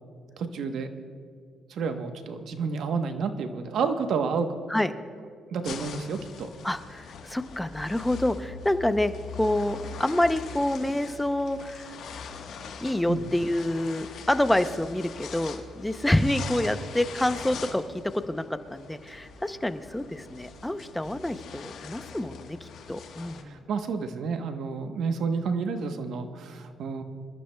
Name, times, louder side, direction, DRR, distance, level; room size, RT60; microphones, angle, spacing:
voice 1, 0.4-0.9 1.7-4.6 5.5-6.5 13.1-13.2 23.4-27.0, right 5 dB, 70° right, 7 dB, 1.0 m, -30 dB
sound 1, 5.6-23.4, left 6 dB, 75° left, 1.2 m, -42 dB
voice 2, 6.6-9.1 9.4-11.9 12.8-17.8 18.3-18.4 18.7-23.6, left 1 dB, 5° left, 10 dB, 0.6 m, -27 dB
26.0 x 13.5 x 2.2 m, 2.2 s
cardioid pair, 90°, 0 cm